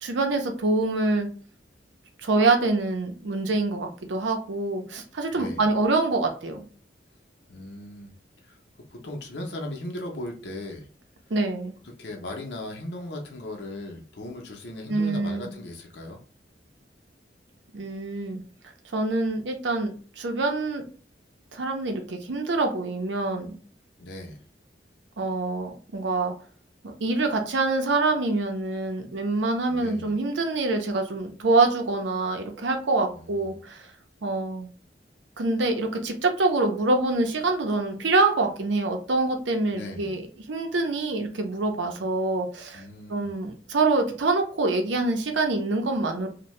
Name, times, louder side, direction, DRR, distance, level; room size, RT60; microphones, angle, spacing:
voice 1, 0.0-1.3 2.2-6.6 11.3-11.8 14.9-15.5 17.7-18.4 18.9-20.8 21.5-23.6 25.2-26.3 26.8-33.9 34.2-34.7 35.4-40.2 40.5-42.8 43.1-46.3, right 3 dB, 85° right, 4 dB, 0.6 m, -25 dB
voice 2, 5.3-5.6 7.5-8.1 8.5-8.6 8.9-10.9 11.8-16.2 24.0-24.4 29.7-30.1 33.2-33.4 39.7-40.1 42.7-43.3, left 1 dB, 70° left, 1 dB, 0.7 m, -37 dB
2.7 x 2.2 x 3.1 m, 0.41 s
head